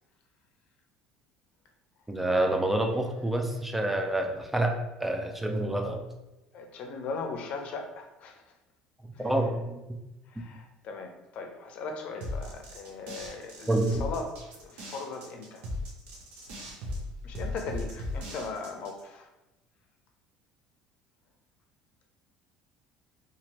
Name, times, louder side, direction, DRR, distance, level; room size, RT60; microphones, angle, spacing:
voice 1, 2.1-6.0 9.2-9.8 10.4-10.5 13.7-14.0, right 1 dB, 5° right, 3 dB, 0.4 m, -28 dB
voice 2, 6.5-8.4 9.1-9.3 10.3-15.6 17.2-19.3, left 4 dB, 55° left, 3 dB, 0.6 m, -39 dB
sound 1, 12.2-19.0, left 1 dB, 70° right, 0.7 m, -37 dB
2.7 x 2.5 x 3.0 m, 0.97 s
cardioid pair, 125°, 3 cm